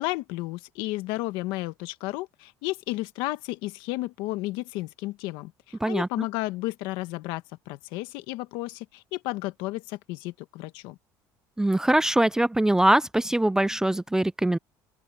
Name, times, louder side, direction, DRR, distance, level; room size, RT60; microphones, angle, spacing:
voice 1, 0.0-11.0, left 19 dB, 80° left, 1.4 m, -33 dB
voice 2, 11.6-14.6, right 1 dB, 5° right, 0.3 m, -22 dB
open air
supercardioid pair, 105°, 8 cm